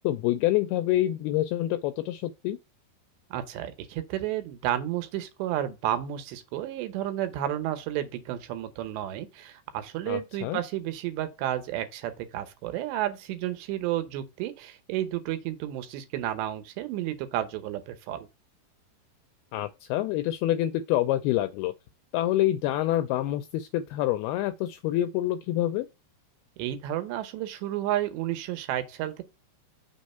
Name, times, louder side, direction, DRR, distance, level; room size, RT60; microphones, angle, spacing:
voice 1, 0.0-2.6 10.1-10.6 19.5-21.7 22.1-25.9, left 14 dB, 85° left, 2.2 m, -27 dB
voice 2, 3.3-18.3 26.6-29.2, right 12 dB, 85° right, 3.1 m, -31 dB
6.4 x 3.1 x 5.4 m
omnidirectional pair, 4.9 m